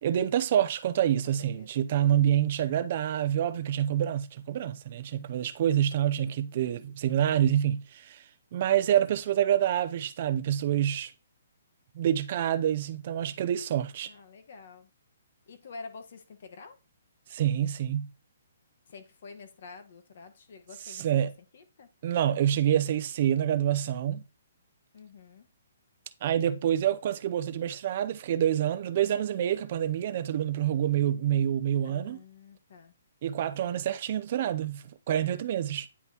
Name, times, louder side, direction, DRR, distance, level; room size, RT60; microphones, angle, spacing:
voice 1, 0.0-8.2 8.5-11.1 12.0-14.1 17.3-18.1 21.0-21.3 22.0-24.2 26.2-32.2 33.2-35.9, right 10 dB, 35° right, 0.6 m, -27 dB
voice 2, 1.2-1.7 14.0-14.9 15.5-16.8 18.9-21.0 21.5-21.9 24.9-25.5 31.8-32.9, left 4 dB, 45° left, 1.3 m, -48 dB
9.6 x 5.4 x 2.9 m
hypercardioid pair, 175°, 0 cm